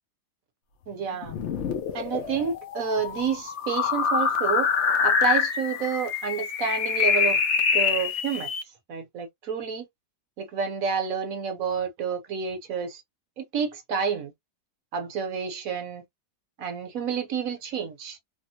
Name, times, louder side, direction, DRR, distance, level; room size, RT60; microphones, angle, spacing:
voice 1, 0.9-1.4 1.9-4.7 5.0-7.4 7.7-8.5 8.9-9.9 10.4-13.0 13.4-14.3 14.9-16.0 16.6-18.2, right 6 dB, 60° right, 1.1 m, -29 dB
sound 1, 1.2-8.6, left 6 dB, 60° left, 0.8 m, -25 dB
3.4 x 2.0 x 2.7 m
omnidirectional pair, 1.8 m